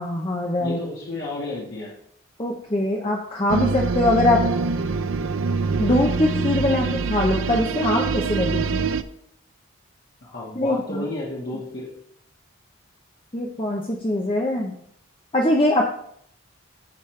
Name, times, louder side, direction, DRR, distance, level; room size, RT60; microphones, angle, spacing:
voice 1, 0.0-0.8 2.4-4.4 5.8-8.8 10.6-11.0 13.3-14.7 15.3-15.8, left 1 dB, 25° left, 0 dB, 0.7 m, -22 dB
voice 2, 0.6-1.9 10.2-11.9, left 2 dB, 50° left, -6 dB, 1.6 m, -32 dB
sound 1, 3.5-9.0, right 4 dB, 70° right, 0.5 m, -24 dB
15.0 x 5.2 x 3.3 m, 0.69 s
head